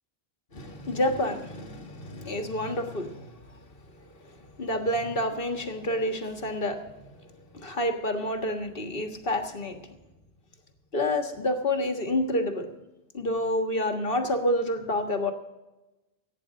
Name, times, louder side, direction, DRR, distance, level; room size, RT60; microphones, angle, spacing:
voice 1, 0.5-3.3 4.3-6.9 7.5-9.8 10.9-12.7 13.1-15.3, left 1 dB, 60° left, 6 dB, 1.8 m, -28 dB
16.0 x 9.3 x 6.3 m, 1.0 s
omnidirectional pair, 1.1 m